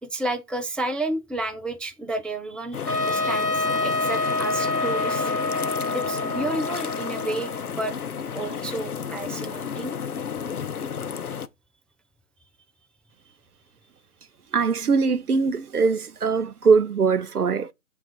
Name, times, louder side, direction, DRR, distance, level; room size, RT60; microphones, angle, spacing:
voice 1, 0.0-5.3 5.9-7.9 8.3-10.0, right 2 dB, ahead, 0.4 m, -31 dB
sound 1, 2.7-11.5, left 7 dB, 75° left, 0.5 m, -32 dB
Trumpet, 2.9-7.7, left 2 dB, 90° left, 0.9 m, -27 dB
voice 2, 14.5-17.7, right 5 dB, 75° right, 0.6 m, -21 dB
5.5 x 2.4 x 3.8 m
figure-of-eight pair, 175°, 46 cm